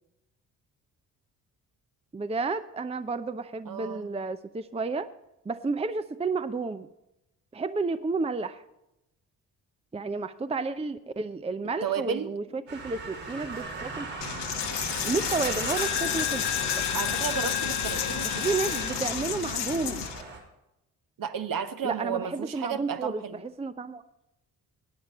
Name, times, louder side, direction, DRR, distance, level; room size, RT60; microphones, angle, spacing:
voice 1, 2.1-5.1 5.5-6.9 7.5-8.6 9.9-14.1 15.0-16.4 18.4-20.1 21.8-24.0, right 4 dB, 15° right, 11 dB, 0.6 m, -31 dB
voice 2, 3.7-4.1 11.8-12.3 16.9-18.6 21.2-23.4, right 7 dB, 45° right, 9 dB, 1.1 m, -33 dB
sound 1, 12.7-20.4, right 3 dB, 75° right, 3.3 m, -38 dB
Coin (dropping), 14.2-20.2, left 10 dB, 65° left, 1.3 m, -30 dB
17.5 x 9.6 x 4.2 m, 0.90 s
hypercardioid pair, 40°, 45 cm